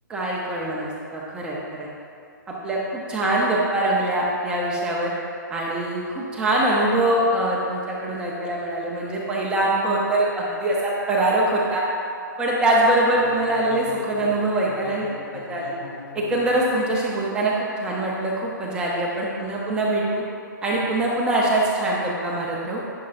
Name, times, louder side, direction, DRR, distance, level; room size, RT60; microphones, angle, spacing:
voice 1, 0.1-1.9 2.5-5.1 5.5-11.8 12.4-15.1 15.3-15.8 16.1-20.2 20.6-22.8, right 1 dB, 10° right, -4 dB, 0.7 m, -23 dB
Bowed string instrument, 13.0-17.1, left 3 dB, 70° left, 0.7 m, -41 dB
10.5 x 5.4 x 2.6 m, 2.4 s
hypercardioid pair, 155°, 11 cm